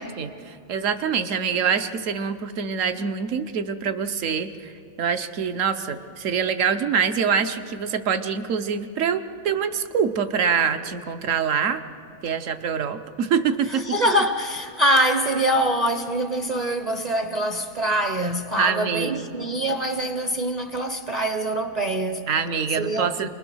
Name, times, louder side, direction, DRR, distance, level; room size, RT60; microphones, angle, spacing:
voice 1, 0.0-4.7 5.0-11.8 12.2-13.8 18.6-19.2 22.3-23.3, right 6 dB, 65° right, 1.2 m, -25 dB
voice 2, 13.7-22.2 22.8-23.3, right 1 dB, 35° right, 0.7 m, -24 dB
27.5 x 21.5 x 6.3 m
omnidirectional pair, 1.5 m